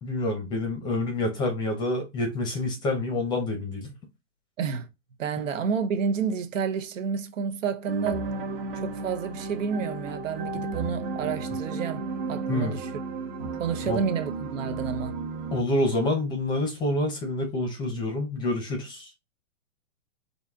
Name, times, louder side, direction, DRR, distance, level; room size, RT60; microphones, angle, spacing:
voice 1, 0.0-3.9 12.5-12.8 13.8-14.0 15.5-19.1, left 2 dB, 10° left, 0.6 m, -27 dB
voice 2, 4.6-4.9 5.2-8.3 8.8-12.9 13.6-15.2, right 6 dB, 80° right, 0.9 m, -30 dB
sound 1, 7.8-15.6, right 3 dB, 50° right, 1.1 m, -33 dB
4.1 x 2.7 x 3.5 m
hypercardioid pair, 155°, 38 cm